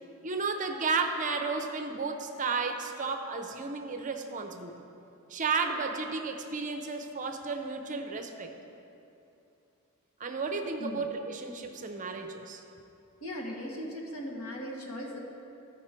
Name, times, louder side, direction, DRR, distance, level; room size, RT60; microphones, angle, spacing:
voice 1, 0.2-4.7 5.3-8.5 10.2-12.6, right 4 dB, 35° right, 5 dB, 0.6 m, -33 dB
voice 2, 13.2-15.2, left 1 dB, 75° left, -1 dB, 1.5 m, -38 dB
14.0 x 5.2 x 4.4 m, 2.7 s
head